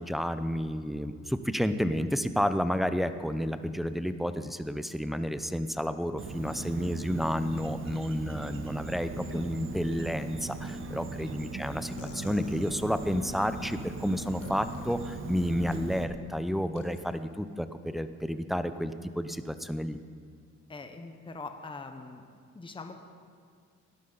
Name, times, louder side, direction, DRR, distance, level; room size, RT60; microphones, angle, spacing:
voice 1, 0.0-20.0, equal, ahead, 10 dB, 0.6 m, -31 dB
Insect, 6.2-16.0, right 3 dB, 45° right, 1.1 m, -39 dB
voice 2, 10.9-11.3 20.7-22.2 22.5-22.9, left 3 dB, 15° left, 6 dB, 0.9 m, -43 dB
sound 1, 12.0-13.3 14.4-15.0 15.5-15.9 16.8-17.0, left 5 dB, 55° left, 1.5 m, -48 dB
17.5 x 11.5 x 3.9 m, 2.1 s
cardioid pair, 90°, 30 cm